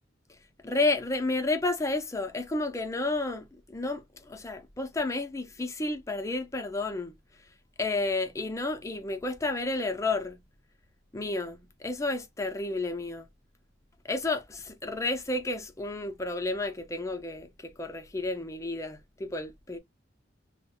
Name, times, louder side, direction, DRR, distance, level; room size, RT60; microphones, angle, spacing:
voice 1, 0.6-7.1 7.8-10.4 11.1-13.3 14.0-19.8, left 2 dB, 15° left, 0.5 m, -31 dB
5.1 x 2.1 x 2.2 m
head